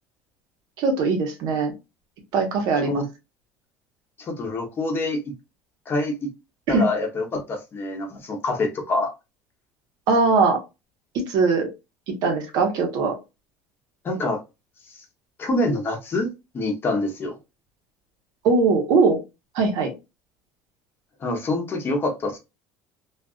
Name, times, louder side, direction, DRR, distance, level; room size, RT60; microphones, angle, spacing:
voice 1, 0.8-1.7 2.3-3.0 6.7-6.9 10.1-10.6 11.3-11.7 12.1-13.1 18.4-19.2 19.5-19.9, right 4 dB, 65° right, 1.1 m, -20 dB
voice 2, 4.2-5.2 5.9-6.3 6.7-9.1 14.0-14.4 15.4-16.3 16.5-17.4 21.2-22.4, left 2 dB, 30° left, 0.9 m, -26 dB
2.6 x 2.4 x 2.3 m
cardioid pair, 130°, 7 cm